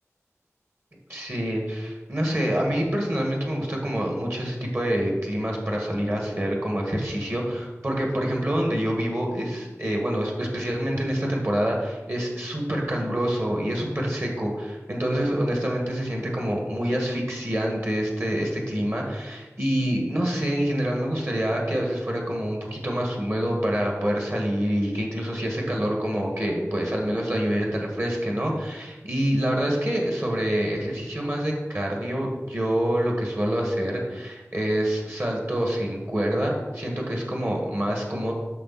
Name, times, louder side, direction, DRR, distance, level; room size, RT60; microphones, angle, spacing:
voice 1, 1.1-38.3, equal, 50° right, 0 dB, 2.0 m, -26 dB
10.5 x 6.3 x 4.3 m, 1.2 s
wide cardioid pair, 55°, 5 cm